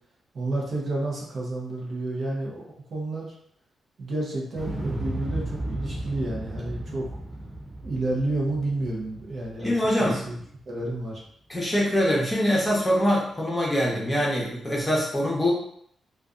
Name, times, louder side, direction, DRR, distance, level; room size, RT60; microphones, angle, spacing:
voice 1, 0.3-3.3 4.0-7.1 7.8-9.7 10.0-10.4 10.7-11.2, right 2 dB, 50° right, -3 dB, 0.7 m, -30 dB
Explosion, 4.5-10.6 10.9-11.0, right 1 dB, 15° right, 0.3 m, -35 dB
voice 2, 9.6-10.2 11.5-15.5, equal, 15° left, -4 dB, 0.7 m, -24 dB
2.6 x 2.2 x 2.4 m, 0.66 s
wide cardioid pair, 120°, 0 cm